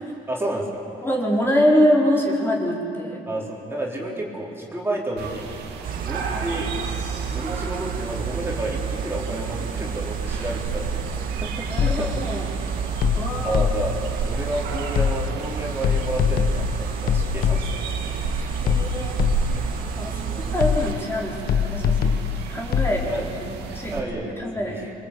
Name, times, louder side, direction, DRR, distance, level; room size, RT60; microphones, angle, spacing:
voice 1, 0.3-0.8 3.3-5.5 6.0-6.7 7.3-11.0 11.4-12.1 13.4-14.0 14.3-18.5 20.1-20.4 22.8-23.3 23.7-24.9, right 1 dB, 15° right, -3 dB, 4.5 m, -31 dB
voice 2, 1.0-3.2 6.3-6.4 11.7-12.5 13.1-13.6 18.6-19.2 20.0-20.3 20.5-22.1 22.5-23.1 23.4-24.0 24.4-24.9, equal, 15° left, -2 dB, 4.7 m, -24 dB
sound 1, 5.2-24.0, right 5 dB, 85° right, 3.0 m, -33 dB
sound 2, 5.8-20.9, right 6 dB, 55° right, 2.1 m, -31 dB
sound 3, 11.8-12.3 13.0-14.1 14.9-15.5 15.8-18.0 18.7-19.7 20.6-21.1 21.5-23.0, left 8 dB, 65° left, 1.5 m, -23 dB
27.0 x 24.0 x 8.6 m, 2.7 s
cardioid pair, 110°, 17 cm